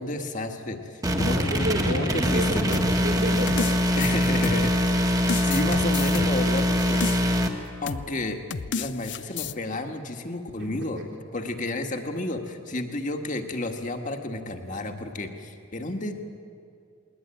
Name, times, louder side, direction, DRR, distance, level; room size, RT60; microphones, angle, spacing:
voice 1, 0.0-2.6 4.0-7.4 7.8-8.4 8.8-11.0 11.3-16.1, left 2 dB, 40° left, 4 dB, 1.7 m, -31 dB
sound 1, 1.0-7.5, equal, 20° right, 1.7 m, -23 dB
voice 2, 1.3-3.7 10.6-11.0, equal, 60° right, 1 dB, 4.2 m, -31 dB
sound 2, 2.7-4.9 5.3-7.5 7.9-8.1 8.5-9.5, left 5 dB, 65° left, 0.6 m, -32 dB
21.0 x 20.0 x 9.1 m, 2.4 s
head